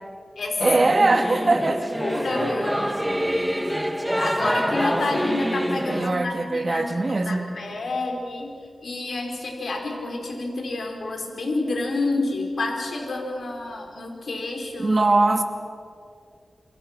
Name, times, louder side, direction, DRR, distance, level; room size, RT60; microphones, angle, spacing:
Singing / Musical instrument, 0.6-6.1, equal, 5° right, 1.5 m, -26 dB
voice 1, 0.6-2.0 5.9-7.5 14.8-15.4, right 2 dB, 45° right, 5 dB, 2.6 m, -21 dB
voice 2, 2.0-2.8 4.1-15.0, left 2 dB, 75° left, 2 dB, 4.6 m, -29 dB
28.5 x 27.0 x 6.0 m, 2.2 s
wide cardioid pair, 70°, 0 cm